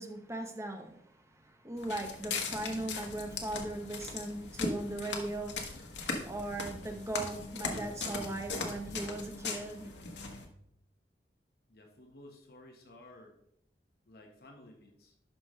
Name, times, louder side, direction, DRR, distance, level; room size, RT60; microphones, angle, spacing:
voice 1, 0.0-6.0 6.3-9.9, right 2 dB, 15° right, 0.9 m, -39 dB
Walk footsteps, 1.8-10.5, left 3 dB, 80° left, 1.4 m, -39 dB
voice 2, 11.7-13.3 14.1-15.1, left 1 dB, 55° left, 1.2 m, -54 dB
12.0 x 5.2 x 3.2 m
head